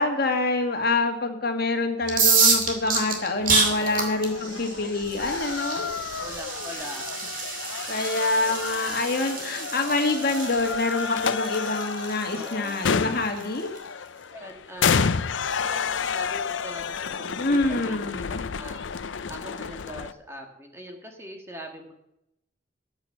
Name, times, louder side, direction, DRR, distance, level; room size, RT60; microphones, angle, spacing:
voice 1, 0.0-5.9 7.9-13.7 17.4-18.4, left 2 dB, 55° left, 4 dB, 2.0 m, -26 dB
sound 1, 2.0-13.8, right 5 dB, 45° right, 2.6 m, -28 dB
sound 2, 3.1-20.1, left 6 dB, 85° left, 0.6 m, -31 dB
voice 2, 3.7-4.1 6.2-7.3 12.3-12.8 14.3-15.1 15.6-18.8 19.3-21.9, equal, 15° right, 3 dB, 1.7 m, -42 dB
14.5 x 9.0 x 5.9 m, 0.84 s
head